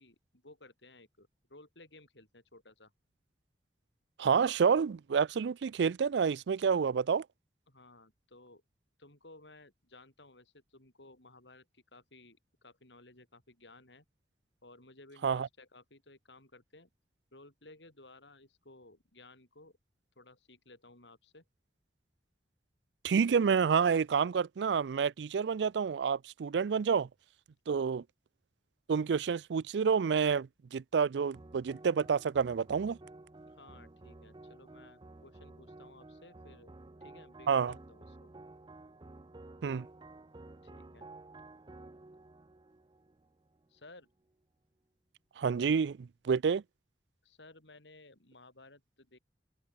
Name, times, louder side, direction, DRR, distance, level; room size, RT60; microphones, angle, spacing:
voice 1, 0.0-2.9 7.7-8.6 9.0-14.0 14.6-16.9 17.3-19.8 20.2-21.4 27.7-28.0 33.4-36.7 37.0-38.2 40.6-41.1 43.7-44.1 47.2-49.2, left 2 dB, 90° left, 8.0 m, -57 dB
voice 2, 4.2-7.2 15.2-15.5 23.0-27.1 27.7-28.0 28.9-33.0 37.5-37.7 39.6-39.9 45.4-46.6, right 6 dB, 75° right, 0.4 m, -29 dB
sound 1, 31.3-43.8, right 2 dB, 25° right, 0.6 m, -53 dB
head